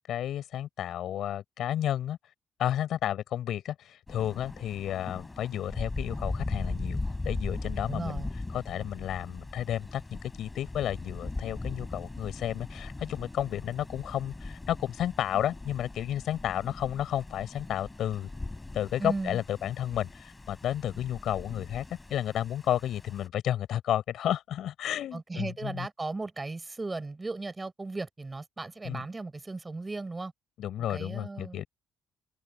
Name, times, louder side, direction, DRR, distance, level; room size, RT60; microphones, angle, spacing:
voice 1, 0.1-2.2 2.6-8.2 8.5-10.0 10.4-18.3 18.7-21.8 22.1-25.9 28.9-29.0 30.6-31.7, left 11 dB, 70° left, 7.4 m, -32 dB
Thunder, 4.1-23.3, left 2 dB, 15° left, 7.0 m, -39 dB
voice 2, 7.9-8.3 19.0-19.4 25.1-30.3 30.9-31.6, right 3 dB, 20° right, 6.0 m, -36 dB
cardioid pair, 100°, 0 cm